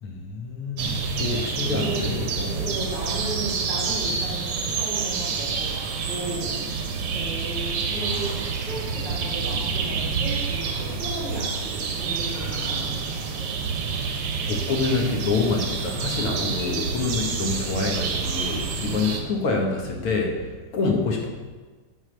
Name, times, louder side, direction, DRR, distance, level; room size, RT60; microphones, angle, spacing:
voice 1, 0.0-2.7 12.4-12.8 14.5-20.4 20.7-21.3, left 3 dB, 80° left, 0 dB, 2.3 m, -27 dB
sound 1, 0.8-19.2, right 5 dB, 90° right, 1.9 m, -28 dB
voice 2, 1.6-2.3 2.5-5.8 6.1-6.6 7.1-13.9, right 2 dB, 55° right, -7 dB, 3.6 m, -35 dB
16.0 x 5.7 x 3.4 m, 1.4 s
omnidirectional pair, 2.4 m